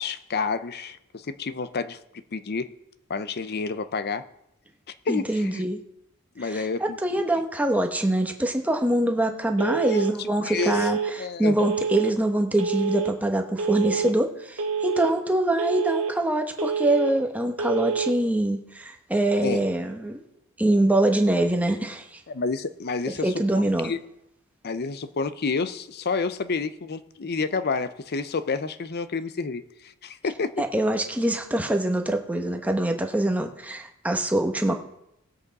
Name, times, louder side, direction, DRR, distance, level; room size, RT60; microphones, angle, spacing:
voice 1, 0.0-2.0 2.3-2.7 3.1-4.2 4.9-5.6 6.4-7.0 9.8-10.9 11.2-11.6 19.4-19.7 22.3-24.0 24.6-30.6 34.7-34.8, left 4 dB, 45° left, 12 dB, 0.6 m, -29 dB
voice 2, 5.1-5.8 6.4-20.2 20.6-22.2 23.2-23.9 30.6-34.8, right 1 dB, 5° right, 4 dB, 1.0 m, -24 dB
Telephone, 9.6-10.1 10.6-11.1 11.6-12.1 12.6-13.1 13.6-14.1 14.6-15.1 15.6-16.1 16.6-17.1 17.6-18.1, right 6 dB, 70° right, 1.4 m, -27 dB
18.5 x 8.0 x 4.1 m, 0.82 s
head